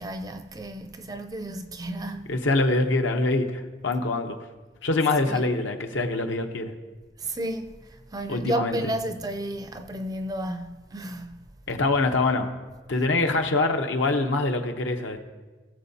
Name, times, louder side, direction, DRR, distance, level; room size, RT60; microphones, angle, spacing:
voice 1, 0.0-2.3 5.3-5.4 7.2-7.7 8.1-11.4, right 1 dB, 20° right, 0.4 m, -32 dB
voice 2, 2.3-4.4 4.8-6.7 8.3-8.8 11.7-12.5 12.9-15.2, left 2 dB, 80° left, 0.9 m, -24 dB
17.0 x 7.2 x 2.8 m
head